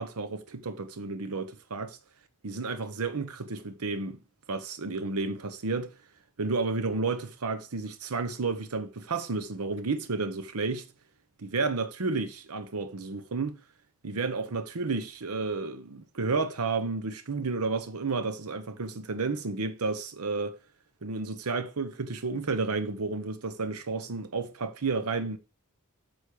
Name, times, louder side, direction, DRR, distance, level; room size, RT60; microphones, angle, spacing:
voice 1, 0.0-1.9 2.4-4.2 4.5-5.9 6.4-10.9 11.4-13.6 14.0-20.6 21.0-25.4, right 4 dB, 85° right, 0.8 m, -31 dB
8.4 x 6.3 x 4.7 m
head